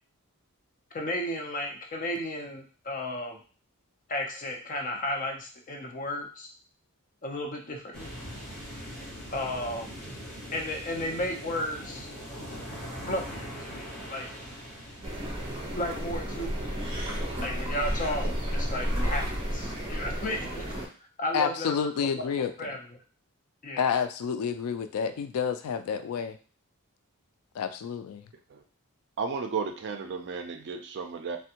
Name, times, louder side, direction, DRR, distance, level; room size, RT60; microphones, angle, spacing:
voice 1, 0.9-3.4 4.1-6.5 7.2-8.1 9.3-10.0 10.5-12.1 13.1-14.5 15.8-16.7 17.4-20.7 21.2-21.9 22.2-22.3 22.6-22.8 23.6-23.9, left 1 dB, 40° left, 2 dB, 0.6 m, -34 dB
sound 1, 7.9-16.0, equal, 5° left, 1.5 m, -41 dB
sound 2, 15.0-20.9, equal, 25° right, 0.8 m, -32 dB
voice 2, 21.3-22.5 23.8-26.4 27.5-28.2, left 6 dB, 75° left, 9 dB, 0.3 m, -29 dB
voice 3, 29.2-31.4, right 5 dB, 55° right, 7 dB, 0.4 m, -33 dB
3.4 x 2.2 x 2.8 m, 0.38 s
head